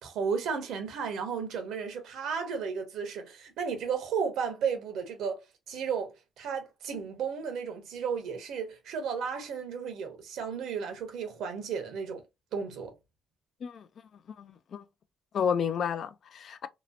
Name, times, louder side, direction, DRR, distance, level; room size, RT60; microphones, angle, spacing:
voice 1, 0.0-5.4 5.7-12.2 12.5-12.9, right 6 dB, 80° right, 0.8 m, -34 dB
voice 2, 14.4-14.8 15.3-16.7, left 7 dB, 60° left, 0.3 m, -31 dB
2.9 x 2.1 x 2.4 m
cardioid pair, 90°, 0 cm